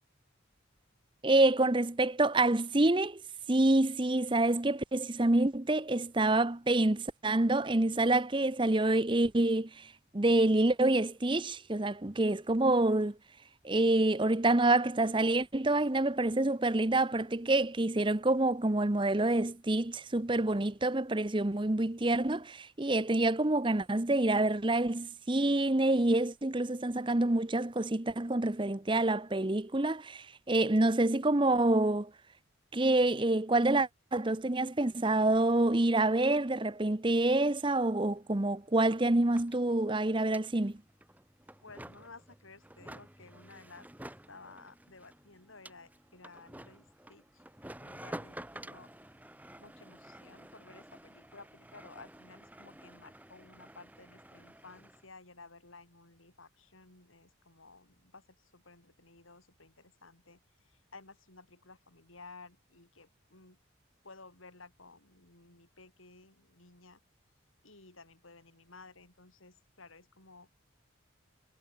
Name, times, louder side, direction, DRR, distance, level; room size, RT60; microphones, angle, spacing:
voice 1, 1.2-3.2 3.5-13.2 13.6-32.1 32.7-40.8, right 2 dB, 25° right, 0.8 m, -27 dB
sound 1, 38.2-38.3 38.4-55.1, right 1 dB, 10° right, 3.1 m, -51 dB
voice 2, 41.6-47.4 47.8-48.9 49.6-63.6 64.0-67.0 67.6-70.5, left 3 dB, 85° left, 6.0 m, -55 dB
head